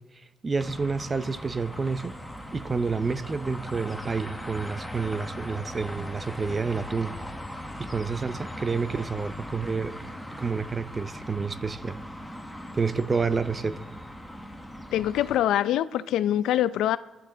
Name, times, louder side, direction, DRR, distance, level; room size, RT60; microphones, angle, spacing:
voice 1, 0.4-2.1 2.5-7.1 7.8-9.9 10.4-12.0 12.7-13.8, right 4 dB, 25° right, 0.6 m, -29 dB
sound 1, 0.6-15.4, equal, ahead, 1.1 m, -39 dB
voice 2, 14.9-17.0, left 12 dB, 80° left, 0.5 m, -24 dB
28.0 x 11.0 x 3.9 m
cardioid pair, 130°, 0 cm